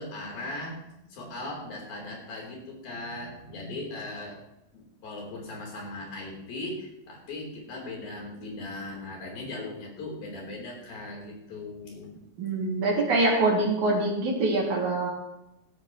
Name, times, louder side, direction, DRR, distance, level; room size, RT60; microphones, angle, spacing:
voice 1, 0.0-4.4 4.7-12.1, left 2 dB, 70° left, -1 dB, 5.3 m, -38 dB
voice 2, 12.4-15.1, right 2 dB, 55° right, -1 dB, 3.5 m, -24 dB
18.0 x 12.5 x 3.0 m, 0.87 s
omnidirectional pair, 4.4 m